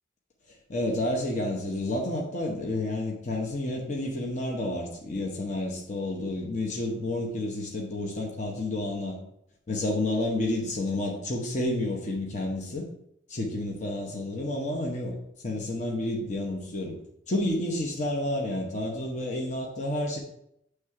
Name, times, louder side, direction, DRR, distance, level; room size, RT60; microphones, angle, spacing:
voice 1, 0.7-9.2 9.7-12.9 13.3-15.2 15.4-17.0 17.3-20.2, left 1 dB, 40° left, -1 dB, 0.8 m, -30 dB
8.0 x 3.3 x 4.8 m, 0.77 s
head